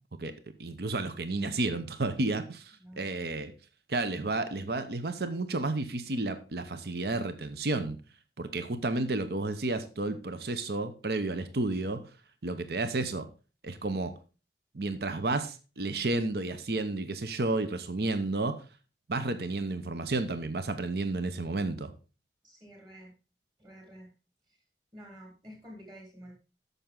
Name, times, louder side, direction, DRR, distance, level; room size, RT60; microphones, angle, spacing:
voice 1, 0.6-3.5 3.9-8.0 8.4-12.0 12.4-13.3 13.6-14.1 14.7-18.6 19.1-21.9, right 2 dB, 65° right, 10 dB, 0.8 m, -31 dB
voice 2, 22.4-23.1 23.6-24.1 24.5-24.6 24.9-26.3, equal, 25° right, 0 dB, 3.6 m, -49 dB
9.2 x 6.8 x 3.8 m, 0.33 s
head